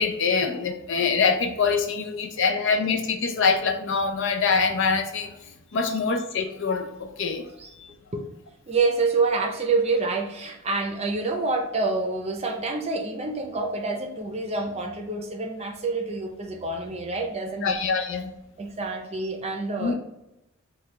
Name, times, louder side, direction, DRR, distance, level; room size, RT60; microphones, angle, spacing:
voice 1, 0.0-5.3 5.7-7.4 17.6-18.3 19.8-19.9, left 5 dB, 60° left, 5 dB, 0.5 m, -24 dB
voice 2, 8.7-17.8 18.6-19.9, right 3 dB, 30° right, 3 dB, 0.6 m, -27 dB
4.8 x 2.3 x 3.2 m, 0.88 s
head